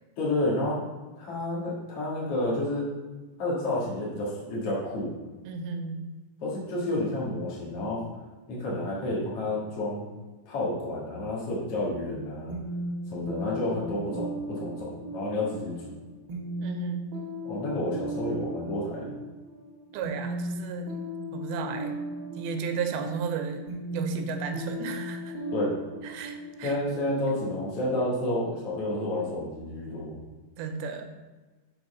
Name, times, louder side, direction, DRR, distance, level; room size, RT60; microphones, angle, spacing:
voice 1, 0.2-0.8 1.2-2.9 3.4-5.1 6.4-8.0 8.5-10.1 10.5-12.5 13.1-15.9 17.4-19.1 25.5-25.7 26.6-30.2, left 1 dB, 45° left, -6 dB, 2.7 m, -30 dB
voice 2, 5.5-6.1 16.6-17.1 19.9-20.9 21.3-22.0 22.4-23.6 23.9-25.4 26.0-26.8 30.6-31.1, right 5 dB, 85° right, 6 dB, 2.6 m, -33 dB
sound 1, 12.5-28.1, equal, 50° right, 1.7 m, -37 dB
7.0 x 4.5 x 5.6 m, 1.2 s
omnidirectional pair, 4.3 m